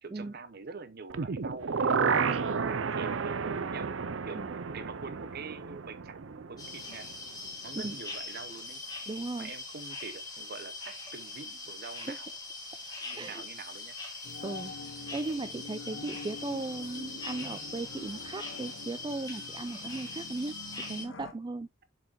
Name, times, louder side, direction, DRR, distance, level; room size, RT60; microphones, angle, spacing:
voice 1, 0.0-3.3 3.7-7.1 7.6-8.8 9.4-12.3 13.0-13.9, right 4 dB, 50° right, 0.9 m, -45 dB
sound 1, 1.1-7.1 7.4-7.5, right 5 dB, 70° right, 0.6 m, -31 dB
sound 2, 6.6-21.0, left 3 dB, 20° left, 2.0 m, -42 dB
voice 2, 9.1-9.5 12.0-12.2 13.2-13.4 14.4-14.7 15.1-20.5 20.9-21.7, right 2 dB, 20° right, 0.3 m, -37 dB
sound 3, 14.2-21.3, left 3 dB, 75° left, 1.1 m, -46 dB
7.3 x 4.6 x 2.9 m
head